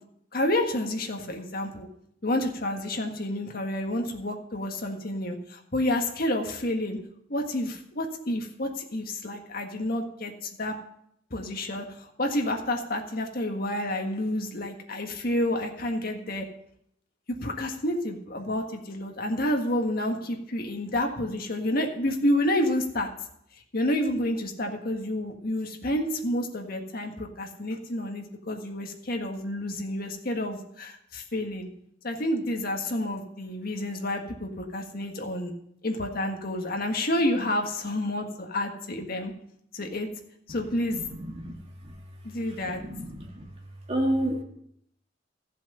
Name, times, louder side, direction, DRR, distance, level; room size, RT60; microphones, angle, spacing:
voice 1, 0.3-1.9 2.2-7.0 7.3-10.7 11.3-16.5 17.4-23.1 23.7-31.7 32.0-35.5 35.8-39.3 39.7-40.1 40.5-41.0 42.2-42.8, left 1 dB, 50° left, 3 dB, 1.7 m, -29 dB
voice 2, 41.0-41.5 41.8-41.9 42.6-43.4 43.9-44.4, right 1 dB, 35° right, 1 dB, 2.0 m, -30 dB
14.5 x 7.6 x 5.5 m, 0.72 s
head